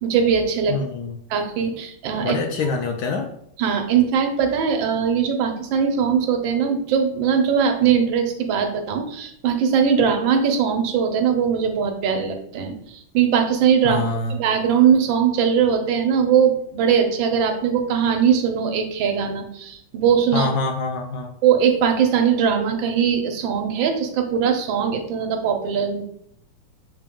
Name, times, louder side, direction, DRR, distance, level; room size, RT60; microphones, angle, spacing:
voice 1, 0.0-0.8 1.3-2.4 3.6-14.0 14.4-20.5 21.4-26.0, right 7 dB, 90° right, 5 dB, 1.5 m, -20 dB
voice 2, 0.7-1.2 2.2-3.3 13.8-14.4 20.3-21.3, left 3 dB, 75° left, 3 dB, 0.9 m, -25 dB
6.1 x 2.2 x 3.6 m, 0.70 s
omnidirectional pair, 2.0 m